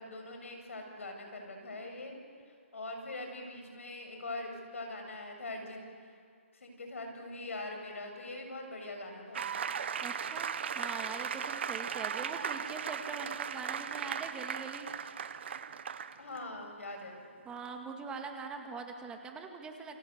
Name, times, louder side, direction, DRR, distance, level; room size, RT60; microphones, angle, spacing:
voice 1, 0.0-2.1 2.7-5.8 6.5-9.6 16.2-17.3, left 2 dB, 75° left, 4 dB, 7.5 m, -42 dB
sound 1, 9.3-16.4, right 7 dB, 55° right, 1.4 m, -37 dB
voice 2, 10.0-14.9 17.5-20.0, right 5 dB, 10° right, 4 dB, 2.1 m, -43 dB
29.0 x 25.5 x 8.1 m, 2.1 s
hypercardioid pair, 145°, 7 cm